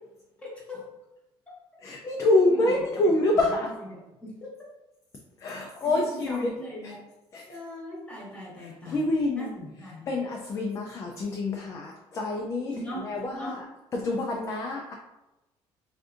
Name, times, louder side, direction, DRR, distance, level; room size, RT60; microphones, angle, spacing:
voice 1, 0.4-0.9 2.4-4.6 5.8-7.0 7.5-9.1 9.3-10.1 12.7-13.6, equal, 10° left, -4 dB, 0.9 m, -40 dB
voice 2, 1.8-3.7 5.4-6.5 7.3-7.4 8.9-9.5 10.1-13.6 13.9-14.9, left 2 dB, 25° left, 0 dB, 0.3 m, -26 dB
3.5 x 2.6 x 2.4 m, 0.97 s
cardioid pair, 165°, 11 cm